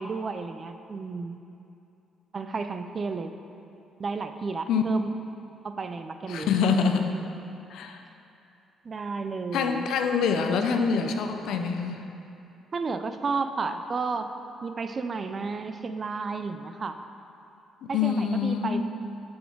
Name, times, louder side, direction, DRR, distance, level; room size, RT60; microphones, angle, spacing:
voice 1, 0.0-1.4 2.3-3.3 4.0-5.1 5.6-6.5 8.8-9.9 12.7-14.3 14.6-17.0 17.9-18.8, right 4 dB, 35° right, 8 dB, 0.4 m, -32 dB
voice 2, 6.3-7.1 7.7-8.0 9.5-12.1 17.8-18.8, left 6 dB, 80° left, 6 dB, 0.5 m, -25 dB
6.8 x 6.4 x 4.6 m, 2.7 s
cardioid pair, 105°, 0 cm